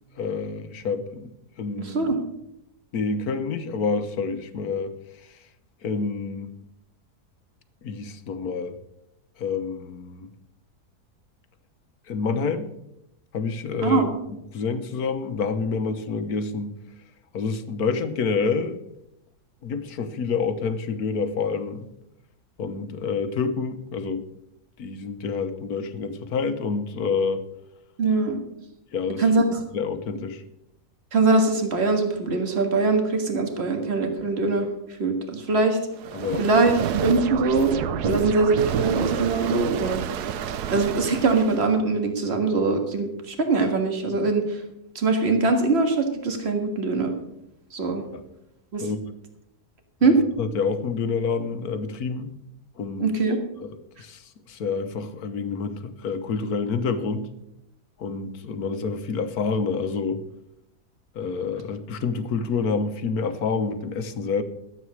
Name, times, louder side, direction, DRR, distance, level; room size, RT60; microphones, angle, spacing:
voice 1, 0.2-1.3 1.6-2.1 2.9-4.9 5.3-5.4 5.8-6.5 7.8-8.8 9.4-10.3 12.1-12.7 13.3-16.8 17.3-18.8 19.6-21.9 22.6-24.3 24.8-27.4 28.9-29.4 29.7-30.4 36.1-36.5 38.0-38.3 48.1-48.2 48.8-49.0 50.0-52.3 52.8-53.7 54.0-57.3 58.0-60.2 61.1-64.4, left 5 dB, 70° left, 10 dB, 1.5 m, -28 dB
voice 2, 1.9-2.2 13.8-14.1 28.0-28.4 29.2-29.4 31.1-34.7 35.0-35.8 36.4-37.7 38.0-40.0 40.7-44.6 45.0-47.1 47.7-48.0 48.7-48.8 50.0-50.2 53.0-53.4, right 3 dB, 40° right, 5 dB, 1.9 m, -22 dB
sound 1, 36.0-41.7, right 9 dB, 75° right, 1.2 m, -29 dB
12.5 x 8.5 x 6.3 m, 0.82 s
omnidirectional pair, 1.7 m